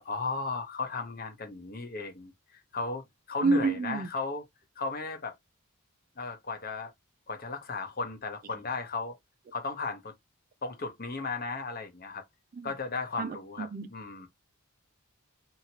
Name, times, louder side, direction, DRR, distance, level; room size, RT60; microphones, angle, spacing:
voice 1, 0.0-3.0 3.3-4.4 4.8-5.4 6.2-6.9 7.3-9.2 9.5-10.1 10.6-12.2 12.6-14.3, left 4 dB, 40° left, 0.8 m, -35 dB
voice 2, 3.4-4.1 12.5-12.7 13.2-13.9, right 3 dB, 40° right, 0.4 m, -28 dB
2.8 x 2.8 x 2.8 m
head